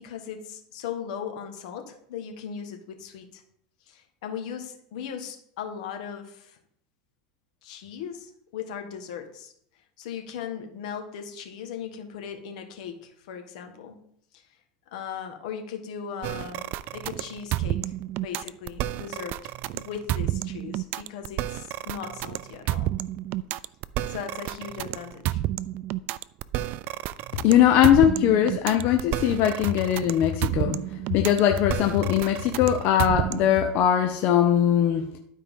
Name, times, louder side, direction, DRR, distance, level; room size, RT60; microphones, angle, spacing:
voice 1, 0.0-3.4 3.9-6.6 7.6-9.5 10.0-14.0 14.3-14.4 14.9-17.9 18.2-19.4 19.7-22.9 24.1-25.4, left 7 dB, 80° left, 5 dB, 1.4 m, -38 dB
sound 1, 16.2-33.6, right 15 dB, 50° right, 0.3 m, -30 dB
voice 2, 27.4-30.8 31.1-35.0, left 10 dB, 55° left, 5 dB, 0.8 m, -20 dB
12.0 x 4.6 x 3.6 m, 0.68 s
supercardioid pair, 120°, 4 cm